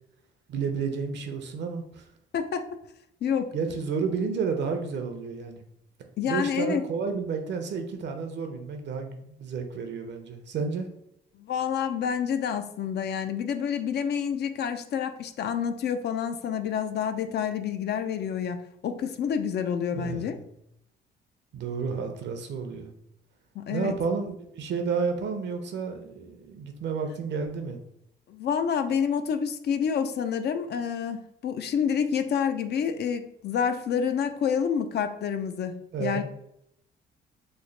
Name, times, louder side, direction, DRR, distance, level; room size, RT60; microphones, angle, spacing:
voice 1, 0.5-2.0 3.5-5.6 6.3-10.9 19.9-20.5 21.5-22.9 23.7-27.8 35.9-36.2, right 5 dB, 60° right, 6 dB, 0.6 m, -31 dB
voice 2, 6.2-6.8 11.4-18.6 18.8-20.3 23.6-24.0 28.3-36.2, left 7 dB, 55° left, 8 dB, 0.4 m, -28 dB
3.1 x 2.1 x 3.8 m, 0.76 s
cardioid pair, 90°, 20 cm